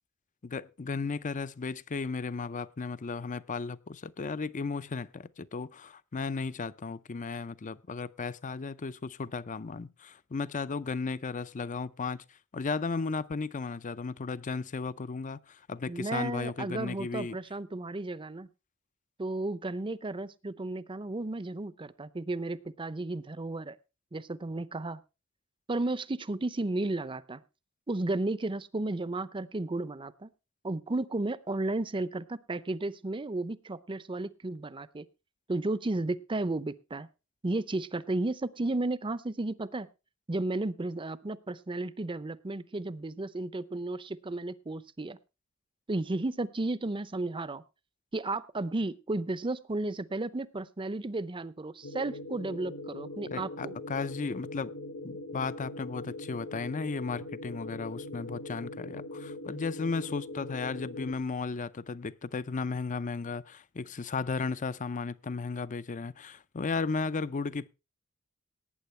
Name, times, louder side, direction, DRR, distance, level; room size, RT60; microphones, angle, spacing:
voice 1, 0.4-12.2 12.5-17.4 53.3-54.7 55.0-67.7, left 4 dB, 35° left, 0.5 m, -35 dB
voice 2, 15.9-18.5 19.2-23.8 24.1-25.0 25.7-27.4 27.9-30.3 30.6-35.0 35.5-37.1 37.4-39.9 40.3-45.2 45.9-47.6 48.1-53.7, right 2 dB, 25° right, 0.6 m, -33 dB
sound 1, 51.8-61.1, left 2 dB, 60° left, 1.5 m, -41 dB
18.5 x 9.1 x 3.2 m
head